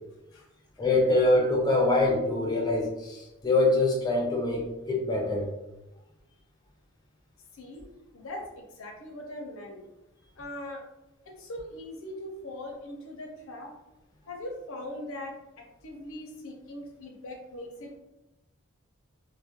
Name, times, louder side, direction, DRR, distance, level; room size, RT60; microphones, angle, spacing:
voice 1, 0.8-5.5, left 2 dB, 20° left, -1 dB, 0.5 m, -24 dB
voice 2, 7.5-7.8 8.1-9.8 10.4-10.8 11.4-13.7 14.3-18.0, left 1 dB, 80° left, 2 dB, 0.6 m, -40 dB
2.3 x 2.1 x 2.8 m, 0.97 s
head